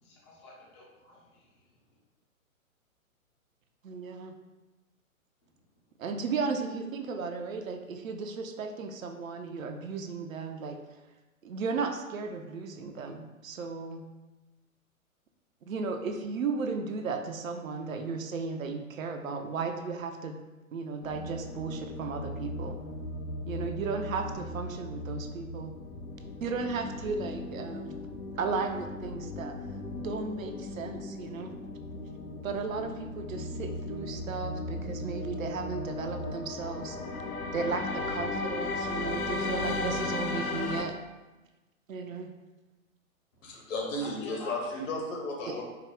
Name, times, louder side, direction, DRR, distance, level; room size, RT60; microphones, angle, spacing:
voice 1, 0.0-1.6 44.0-44.8, left 1 dB, 20° left, -4 dB, 0.4 m, -47 dB
voice 2, 3.8-4.3 6.0-10.8 11.4-14.0 15.7-20.4 20.7-22.8 23.5-25.7 26.4-28.0 28.4-29.5 30.0-31.5 32.4-37.0 37.5-40.9 41.9-42.3 45.5-45.6, right 4 dB, 70° right, 5 dB, 0.5 m, -35 dB
sound 1, 21.0-40.8, left 2 dB, 85° left, 0.6 m, -36 dB
voice 3, 43.4-45.6, left 1 dB, 60° left, 0 dB, 1.1 m, -34 dB
4.6 x 2.0 x 3.4 m, 1.1 s
figure-of-eight pair, 125°, 43 cm